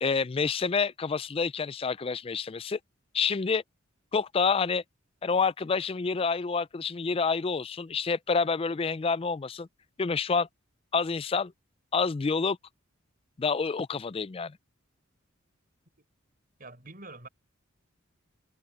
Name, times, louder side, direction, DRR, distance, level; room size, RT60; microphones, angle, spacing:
voice 1, 0.0-2.8 3.1-3.6 4.1-4.8 5.2-9.7 10.0-10.5 10.9-11.5 11.9-12.6 13.4-14.6, left 5 dB, 25° left, 0.4 m, -28 dB
voice 2, 16.6-17.3, right 2 dB, 45° right, 4.9 m, -46 dB
head